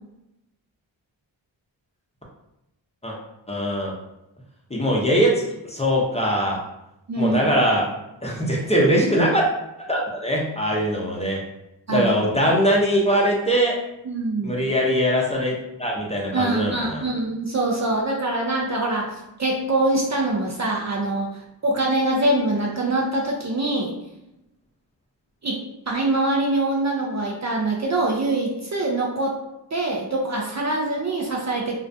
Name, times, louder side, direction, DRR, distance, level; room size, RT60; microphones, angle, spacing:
voice 1, 3.5-3.9 4.7-6.6 7.2-7.9 8.2-9.4 9.8-11.4 11.9-13.8 14.4-17.0, equal, 15° left, -3 dB, 0.6 m, -21 dB
voice 2, 7.1-7.5 11.9-12.1 14.0-14.5 16.3-23.9 25.4-25.6 25.9-29.4 29.7-31.8, right 2 dB, 35° right, -1 dB, 0.5 m, -24 dB
2.4 x 2.1 x 2.5 m, 0.88 s
cardioid pair, 40°, 47 cm